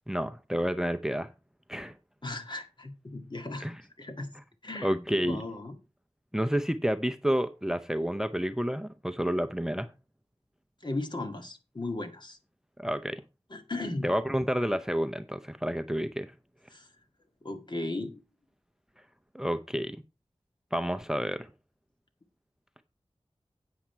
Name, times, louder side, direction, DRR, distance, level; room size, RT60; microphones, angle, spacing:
voice 1, 0.1-1.3 1.7-1.9 3.6-3.8 4.8-5.4 6.3-9.9 12.8-13.2 14.0-16.3 19.3-20.0 20.7-21.5, equal, 5° right, 0.6 m, -29 dB
voice 2, 2.2-3.7 4.0-4.3 4.6-5.8 10.8-12.4 13.5-14.1 16.7-16.9 17.4-18.2, left 2 dB, 45° left, 1.9 m, -36 dB
8.7 x 7.7 x 4.5 m
wide cardioid pair, 65°, 11 cm